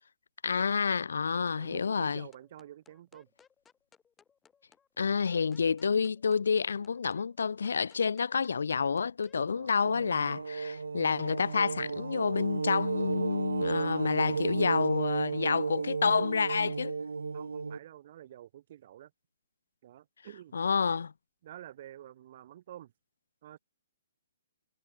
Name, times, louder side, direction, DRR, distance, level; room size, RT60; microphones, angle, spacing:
voice 1, 0.4-2.3 5.0-17.0 20.5-21.1, left 5 dB, 70° left, 0.3 m, -29 dB
voice 2, 1.6-3.3 9.3-9.8 17.3-19.1 19.8-20.6 21.4-22.9 23.4-23.6, right 12 dB, 45° right, 1.4 m, -49 dB
sound 1, 2.3-9.4, left 7 dB, 10° left, 7.9 m, -64 dB
sound 2, 9.8-17.8, right 4 dB, 75° right, 0.5 m, -33 dB
figure-of-eight pair, 125°, 0 cm